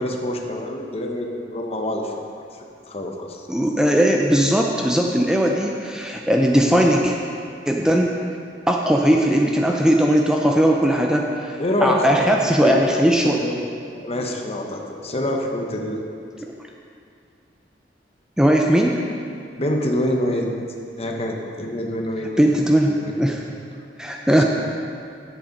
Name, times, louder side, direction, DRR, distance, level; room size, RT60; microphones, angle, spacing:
voice 1, 0.0-2.3 2.9-3.5 11.6-12.8 13.2-13.5 14.0-16.1 19.6-20.5 21.0-22.3 23.0-23.4 24.3-24.4, left 1 dB, 35° left, 1 dB, 1.0 m, -26 dB
voice 2, 3.5-7.1 7.7-8.2 8.7-13.4 16.4-16.5 18.4-19.1 22.4-23.4 24.0-24.4, equal, 5° right, 0 dB, 0.5 m, -18 dB
9.9 x 8.1 x 5.2 m, 2.4 s
head